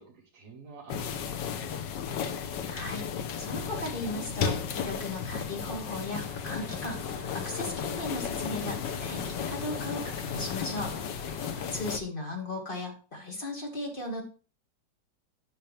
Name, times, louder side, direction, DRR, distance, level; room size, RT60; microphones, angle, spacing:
voice 1, 0.0-1.5, right 5 dB, 50° right, -3 dB, 1.9 m, -50 dB
sound 1, 0.9-12.0, left 7 dB, 80° left, 1.5 m, -34 dB
voice 2, 2.6-3.1 3.4-14.2, left 1 dB, 30° left, 1 dB, 1.9 m, -37 dB
sound 2, 6.3-11.7, equal, 15° left, 2.7 m, -48 dB
10.0 x 5.9 x 3.3 m, 0.36 s
omnidirectional pair, 1.9 m